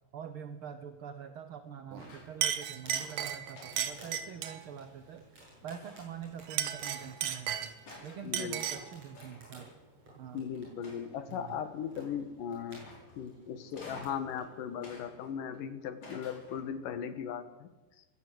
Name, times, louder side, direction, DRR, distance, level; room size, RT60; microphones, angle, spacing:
voice 1, 0.1-5.3 5.6-7.7 8.0-9.7 10.2-10.4 11.3-11.6, right 8 dB, 70° right, 9 dB, 1.3 m, -45 dB
sound 1, 1.9-2.4 3.5-4.7 5.8-6.3 7.3-7.4 7.9-8.3 9.1-9.6 10.8-11.4 12.7-13.2 13.7-14.3 14.8-15.6 16.0-16.8, left 2 dB, 65° left, 7.2 m, -52 dB
Chink clink, 1.9-2.1 2.4-4.6 6.4-7.9 8.3-8.9, right 10 dB, 90° right, 2.9 m, -34 dB
sound 2, 2.5-15.1, right 1 dB, 45° right, 9.1 m, -56 dB
voice 2, 8.2-8.6 10.3-12.9 13.2-17.7, left 8 dB, 80° left, 11 dB, 3.1 m, -38 dB
22.0 x 17.5 x 7.9 m, 1.1 s
omnidirectional pair, 3.8 m